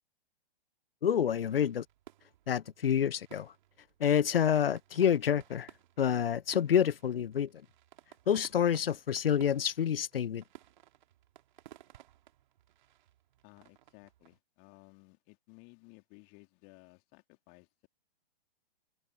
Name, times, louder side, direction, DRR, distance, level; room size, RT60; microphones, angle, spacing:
voice 1, 1.0-1.8 2.5-3.5 4.0-5.7 6.0-7.5 8.3-10.4, left 8 dB, 75° left, 0.6 m, -28 dB
sound 1, 1.5-14.4, right 13 dB, 50° right, 2.3 m, -58 dB
voice 2, 13.4-17.9, left 34 dB, 35° left, 3.3 m, -58 dB
figure-of-eight pair, 115°, 29 cm